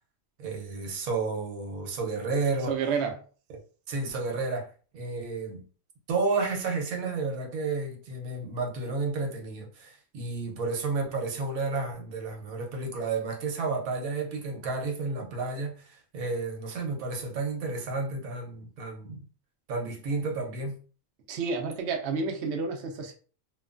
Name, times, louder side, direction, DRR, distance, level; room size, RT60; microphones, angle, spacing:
voice 1, 0.4-2.7 3.9-4.7 4.9-5.6 6.1-19.2 19.7-20.8, right 3 dB, 90° right, 1.2 m, -31 dB
voice 2, 2.7-3.2 21.3-23.1, right 5 dB, 65° right, 0.8 m, -30 dB
3.0 x 2.2 x 2.4 m
omnidirectional pair, 1.4 m